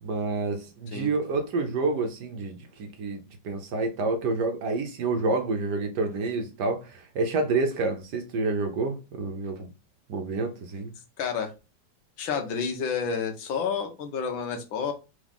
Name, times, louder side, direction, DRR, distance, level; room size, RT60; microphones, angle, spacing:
voice 1, 0.0-9.7 10.1-10.9, right 3 dB, 60° right, 1.3 m, -28 dB
voice 2, 11.2-11.5 12.2-14.9, left 6 dB, 80° left, 1.7 m, -30 dB
3.8 x 3.6 x 3.5 m
omnidirectional pair, 2.2 m